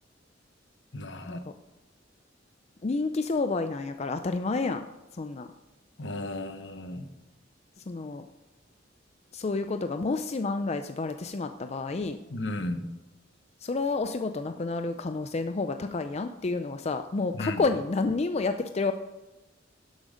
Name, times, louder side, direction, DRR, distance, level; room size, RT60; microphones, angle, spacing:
voice 1, 0.9-1.4 6.0-7.1 12.3-12.8 17.3-17.6, left 1 dB, 70° left, 8 dB, 1.0 m, -34 dB
voice 2, 2.8-4.9 5.1-5.5 7.8-8.3 9.3-12.2 13.6-18.9, left 3 dB, 35° left, 8 dB, 0.5 m, -29 dB
11.5 x 8.0 x 5.0 m, 1.1 s
head